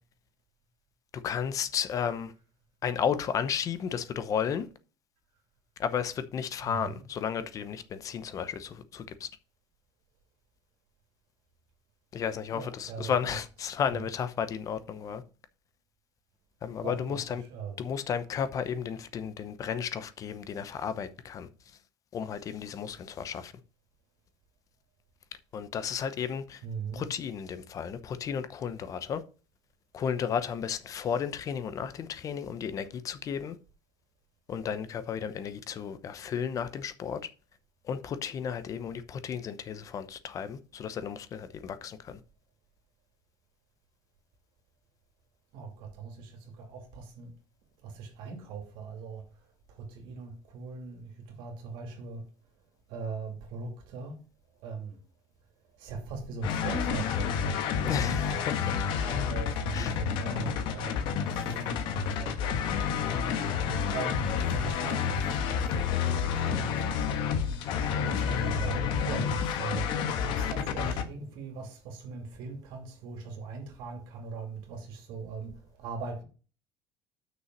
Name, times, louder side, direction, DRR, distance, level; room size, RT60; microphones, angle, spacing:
voice 1, 1.1-2.3 2.8-4.7 5.8-9.3 12.1-15.2 16.6-17.4 17.8-21.5 22.1-23.5 25.5-26.6 26.9-29.2 29.9-33.6 34.5-37.2 37.8-42.2 57.8-58.8 59.7-60.0, left 7 dB, 40° left, 0.8 m, -33 dB
voice 2, 6.6-7.0 12.5-13.4 16.8-17.2 17.5-17.8 26.6-27.1 45.5-47.3 47.8-49.3 49.7-52.2 52.9-54.2 54.6-55.0 55.8-62.6 63.6-65.7 66.0-66.9 67.4-76.2, right 4 dB, 75° right, 2.6 m, -40 dB
sound 1, 56.4-71.0, left 7 dB, 70° left, 1.4 m, -30 dB
6.3 x 5.5 x 6.3 m
cardioid pair, 115°, 9 cm